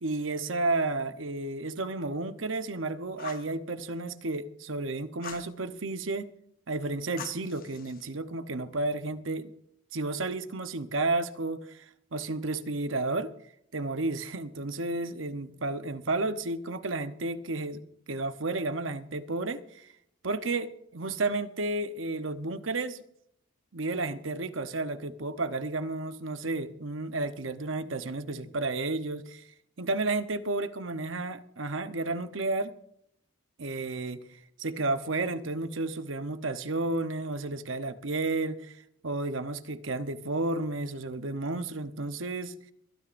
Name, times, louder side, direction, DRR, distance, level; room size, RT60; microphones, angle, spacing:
voice 1, 0.0-6.3 6.7-9.5 9.9-13.3 13.7-17.8 18.1-19.9 20.2-23.0 23.7-29.5 29.8-32.7 33.6-38.8 39.0-42.5, right 2 dB, 70° right, 10 dB, 0.9 m, -32 dB
Fire, 3.2-3.5 5.2-5.5 7.2-8.1, left 7 dB, 45° left, 0.9 m, -43 dB
23.5 x 13.0 x 2.6 m, 0.70 s
head